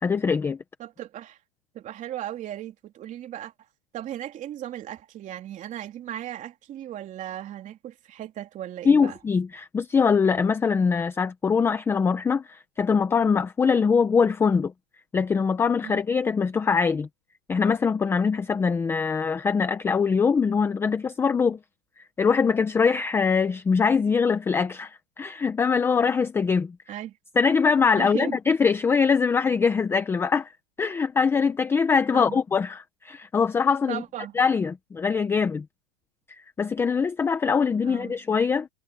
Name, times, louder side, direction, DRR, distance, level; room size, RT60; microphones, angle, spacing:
voice 1, 0.0-0.6 8.8-14.7 15.1-17.1 17.5-21.6 22.0-26.9 27.4-30.5 30.8-34.0 34.4-35.6 36.3-38.7, left 5 dB, 5° left, 0.7 m, -23 dB
voice 2, 0.8-1.4 1.7-3.5 3.9-9.2 15.8-16.0 26.9-27.2 28.0-28.4 32.1-32.4 33.9-34.3 37.8-38.1, right 12 dB, 25° right, 3.3 m, -36 dB
hypercardioid pair, 150°, 33 cm